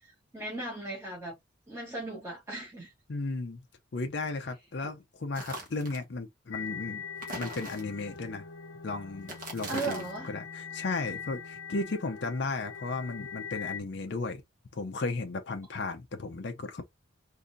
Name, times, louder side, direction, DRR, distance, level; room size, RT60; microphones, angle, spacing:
voice 1, 0.3-1.4 1.7-2.9 9.7-10.3, right 2 dB, 15° right, 1.3 m, -36 dB
voice 2, 3.1-3.6 3.9-7.0 7.3-8.4 8.8-14.4 14.7-16.8, left 3 dB, 55° left, 0.6 m, -35 dB
sound 1, 5.3-6.0 7.2-8.2 9.2-10.2, right 1 dB, 45° right, 1.3 m, -41 dB
sound 2, 6.5-13.8, left 6 dB, 90° left, 0.8 m, -42 dB
3.8 x 2.7 x 2.4 m
head